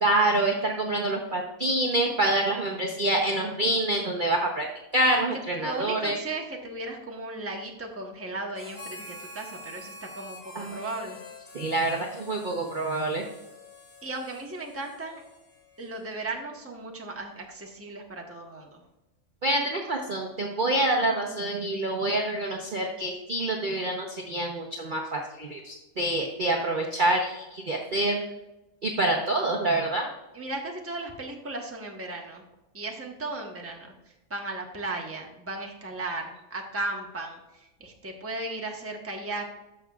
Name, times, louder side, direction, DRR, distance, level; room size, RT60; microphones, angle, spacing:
voice 1, 0.0-4.7 4.9-6.1 10.5-10.8 11.5-13.2 19.4-28.2 28.8-30.1, right 1 dB, 40° right, 0 dB, 0.8 m, -26 dB
voice 2, 5.1-11.2 14.0-15.2 15.8-18.8 30.3-32.4 32.7-39.4, right 2 dB, 10° right, 1 dB, 0.9 m, -36 dB
Harmonica, 8.5-16.3, left 2 dB, 80° left, 3.3 m, -47 dB
13.5 x 6.1 x 2.4 m, 1.0 s
omnidirectional pair, 1.6 m